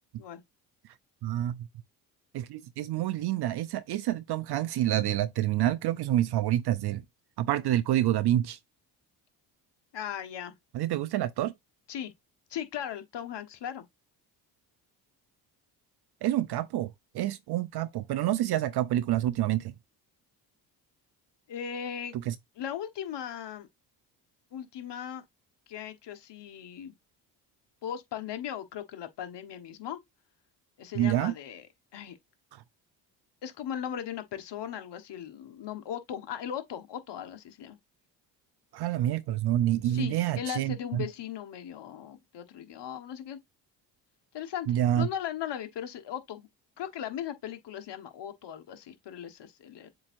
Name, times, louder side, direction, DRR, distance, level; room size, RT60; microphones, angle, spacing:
voice 1, 1.2-1.7 2.3-7.0 7.4-8.6 10.7-11.5 16.2-19.7 22.3-22.4 31.0-31.3 38.7-41.0 44.7-45.1, right 13 dB, 55° right, 0.5 m, -28 dB
voice 2, 9.9-10.5 11.9-12.1 12.5-13.8 21.5-22.2 22.6-23.7 24.5-25.2 25.7-26.9 27.8-30.0 30.8-31.7 31.9-32.2 33.4-37.8 39.8-43.4 44.3-46.5 46.8-49.9, left 9 dB, 60° left, 1.3 m, -38 dB
7.6 x 2.7 x 2.6 m
supercardioid pair, 60°, 47 cm